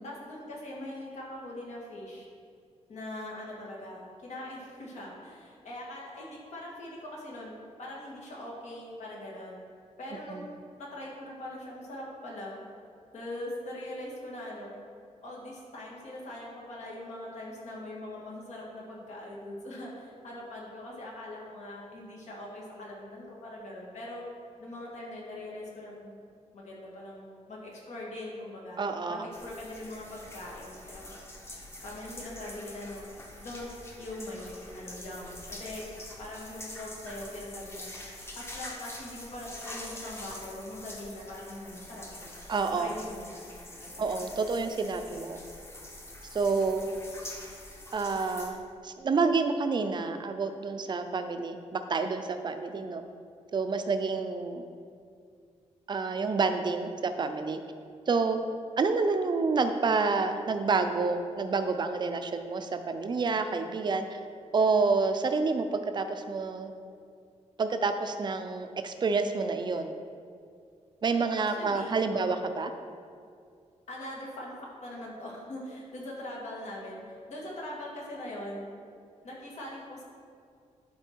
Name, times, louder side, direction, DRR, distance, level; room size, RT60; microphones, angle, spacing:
voice 1, 0.0-2.3 2.9-9.6 10.0-10.5 10.8-12.6 13.1-14.7 15.2-24.2 24.6-26.2 26.5-28.8 29.1-31.2 31.8-33.1 33.4-33.7 34.0-35.8 36.2-37.9 38.4-42.5 42.8-43.4 43.8-44.2 45.0-45.3 71.5-72.3 73.9-78.7 79.2-80.0, left 1 dB, 70° left, -4 dB, 2.1 m, -42 dB
voice 2, 28.8-29.3 42.5-42.9 44.0-45.4 46.3-46.8 47.9-53.0 53.5-54.6 55.9-57.6 58.1-58.4 58.8-64.2 64.5-66.7 67.6-70.0 71.0-72.7, right 4 dB, 40° right, 7 dB, 0.5 m, -28 dB
sound 1, 29.3-48.5, left 1 dB, 20° left, 1.1 m, -45 dB
11.5 x 4.5 x 4.5 m, 2.3 s
wide cardioid pair, 160°, 12 cm